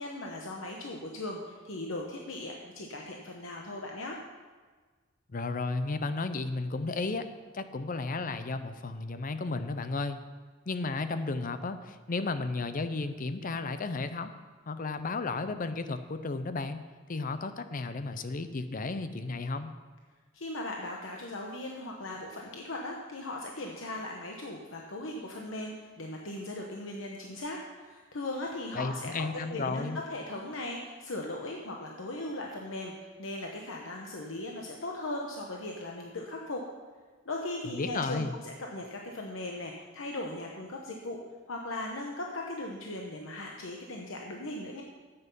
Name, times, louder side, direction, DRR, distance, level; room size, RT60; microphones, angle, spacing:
voice 1, 0.0-4.2 20.3-36.6 37.3-41.2 41.5-44.8, left 2 dB, 80° left, 0 dB, 1.0 m, -38 dB
voice 2, 5.3-7.3 7.5-10.2 10.7-14.3 14.7-16.8 17.1-19.7 28.7-30.0 37.7-38.3, left 3 dB, 45° left, 10 dB, 0.6 m, -33 dB
9.6 x 8.0 x 5.4 m, 1.4 s
head